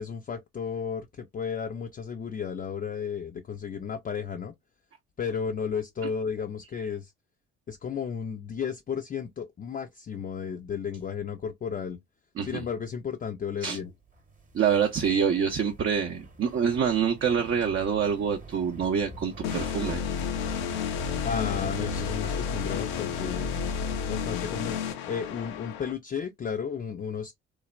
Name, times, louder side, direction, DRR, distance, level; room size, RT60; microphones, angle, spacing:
voice 1, 0.0-4.5 5.2-7.1 7.7-12.0 12.4-13.9 21.2-23.5 24.0-24.8 25.0-27.3, left 6 dB, 30° left, 0.4 m, -33 dB
sound 1, 14.1-24.1, right 1 dB, 25° right, 0.9 m, -44 dB
voice 2, 14.5-20.0, right 7 dB, 45° right, 0.6 m, -26 dB
sound 2, 19.4-25.9, left 7 dB, 85° left, 0.5 m, -31 dB
3.1 x 2.1 x 2.3 m
hypercardioid pair, 55°, 29 cm